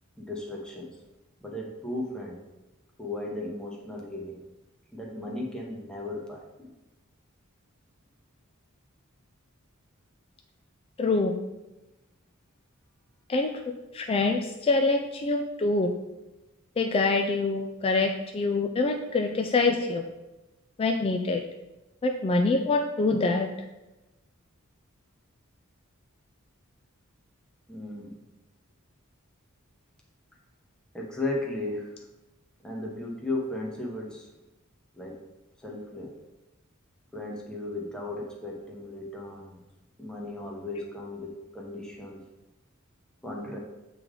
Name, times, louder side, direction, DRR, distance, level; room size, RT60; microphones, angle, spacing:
voice 1, 0.2-1.0 1.4-2.4 3.0-4.4 4.9-6.7 22.9-23.1 27.7-28.2 30.9-32.1 32.6-34.3 34.9-35.2 35.6-36.1 37.1-39.6 40.0-42.2 43.2-43.6, left 2 dB, 5° left, -2 dB, 0.8 m, -36 dB
voice 2, 11.0-11.3 13.3-13.5 13.9-15.9 16.8-20.0 20.8-21.4 22.0-23.5, left 3 dB, 25° left, 3 dB, 0.3 m, -25 dB
7.6 x 3.3 x 3.7 m, 1.0 s
head